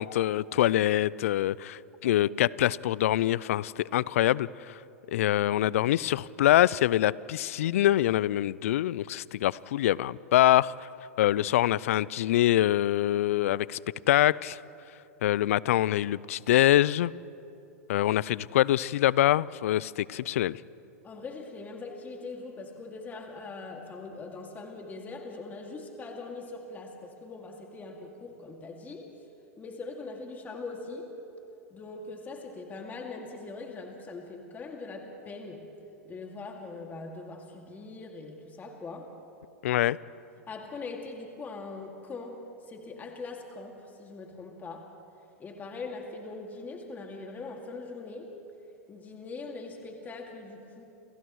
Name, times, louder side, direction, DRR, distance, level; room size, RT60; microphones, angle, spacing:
voice 1, 0.0-4.7 5.1-10.9 11.2-13.8 14.1-14.6 15.2-17.1 17.9-20.6 39.6-40.0, left 13 dB, 65° left, 22 dB, 0.4 m, -25 dB
voice 2, 21.0-29.1 29.6-31.2 31.7-35.7 36.0-39.1 40.5-42.4 42.7-44.9 45.4-48.3 48.9-50.8, left 3 dB, 20° left, 1 dB, 2.3 m, -41 dB
30.0 x 28.5 x 3.2 m, 2.7 s
hypercardioid pair, 105°, 8 cm